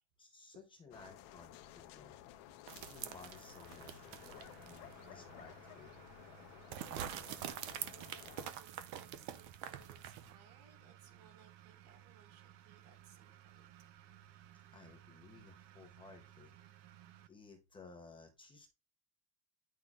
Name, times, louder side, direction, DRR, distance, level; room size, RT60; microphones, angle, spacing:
voice 1, 0.2-6.0 14.7-16.5 17.0-18.7, left 4 dB, 10° left, 0.7 m, -58 dB
sound 1, 0.9-8.5, left 12 dB, 45° left, 0.8 m, -55 dB
sound 2, 2.7-4.9 5.3-5.4 6.7-10.3, right 10 dB, 45° right, 0.7 m, -45 dB
sound 3, 3.0-17.3, right 12 dB, 60° right, 1.0 m, -60 dB
voice 2, 6.7-13.7, right 7 dB, 85° right, 3.0 m, -64 dB
10.0 x 6.0 x 2.4 m
cardioid pair, 175°, 43 cm